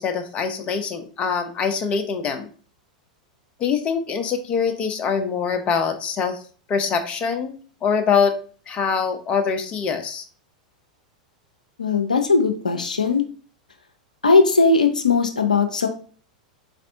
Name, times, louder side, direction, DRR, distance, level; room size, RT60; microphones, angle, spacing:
voice 1, 0.0-2.5 3.6-6.4 6.7-7.5 7.8-8.4 8.7-10.2, left 6 dB, 30° left, 6 dB, 0.7 m, -23 dB
voice 2, 11.8-13.2 14.2-15.9, left 4 dB, 85° left, 5 dB, 0.5 m, -18 dB
4.3 x 3.3 x 2.6 m, 0.41 s
figure-of-eight pair, 95°, 4 cm